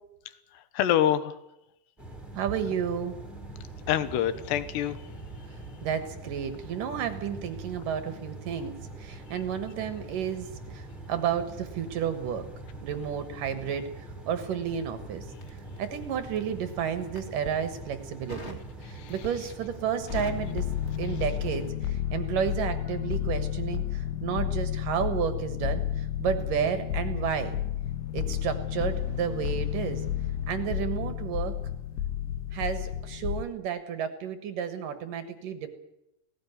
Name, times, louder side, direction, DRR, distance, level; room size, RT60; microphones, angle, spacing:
voice 1, 0.5-1.3 3.9-5.0 18.8-19.1, left 11 dB, 70° left, 12 dB, 3.2 m, -26 dB
sound 1, 2.0-21.7, right 2 dB, ahead, 3.0 m, -43 dB
voice 2, 2.4-3.1 5.8-12.4 12.8-15.3 15.8-18.6 18.9-20.6 21.0-27.5 28.1-30.0 30.5-31.6 32.5-35.7, right 8 dB, 65° right, 9 dB, 2.3 m, -31 dB
Crackle, 15.4-16.5 17.0-17.6 18.3-18.7 19.1-19.5 19.8-21.8 22.0-22.3, equal, 40° left, 0.9 m, -43 dB
sound 2, 20.1-33.5, left 10 dB, 90° left, 3.4 m, -31 dB
18.0 x 17.0 x 9.5 m, 0.85 s
omnidirectional pair, 5.3 m